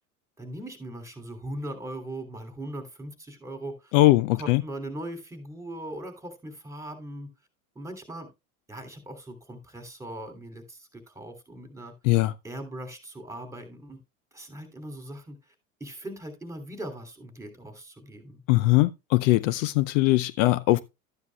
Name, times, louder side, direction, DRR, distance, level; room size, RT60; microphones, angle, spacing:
voice 1, 0.4-3.9 4.3-7.3 7.7-8.3 8.7-11.9 12.4-14.0 14.3-15.4 15.8-18.4, right 1 dB, 5° right, 2.9 m, -39 dB
voice 2, 3.9-4.6 12.0-12.3 18.5-20.8, left 18 dB, 60° left, 0.6 m, -21 dB
13.0 x 9.6 x 2.3 m
hypercardioid pair, 95°, 43 cm